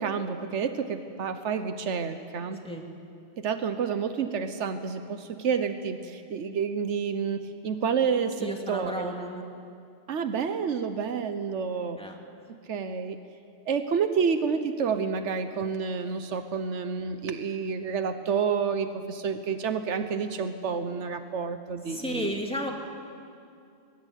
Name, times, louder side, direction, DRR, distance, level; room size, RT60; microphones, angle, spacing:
voice 1, 0.0-2.6 3.4-9.1 10.1-12.0 12.5-13.2 13.7-22.3, right 6 dB, 85° right, 9 dB, 1.3 m, -29 dB
voice 2, 8.4-9.4 12.0-12.2 21.9-22.7, equal, 5° left, 1 dB, 2.6 m, -33 dB
24.5 x 20.5 x 8.3 m, 2.4 s
omnidirectional pair, 1.2 m